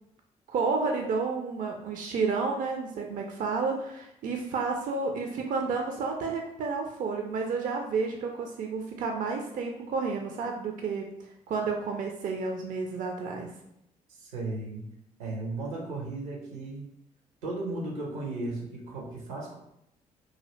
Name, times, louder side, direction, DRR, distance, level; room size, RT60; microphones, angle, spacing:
voice 1, 0.5-11.1 11.5-13.5, right 4 dB, 45° right, 2 dB, 0.4 m, -31 dB
voice 2, 14.1-14.8 15.2-16.9 17.4-19.6, right 2 dB, 75° right, -1 dB, 0.7 m, -35 dB
2.7 x 2.7 x 3.0 m, 0.78 s
figure-of-eight pair, 45°, 19 cm